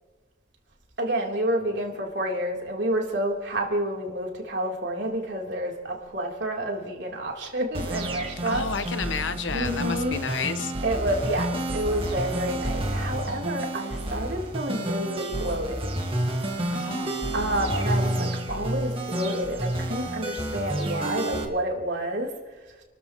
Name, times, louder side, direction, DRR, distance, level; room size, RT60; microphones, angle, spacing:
voice 1, 1.0-8.7 9.5-10.2 10.8-16.0 17.3-22.3, right 1 dB, 65° right, -1 dB, 3.5 m, -29 dB
sound 1, 7.7-21.4, right 1 dB, 30° right, 1.8 m, -30 dB
voice 2, 8.4-10.7 16.7-17.3, left 5 dB, 75° left, 10 dB, 1.1 m, -31 dB
29.5 x 13.5 x 3.1 m, 1.2 s
head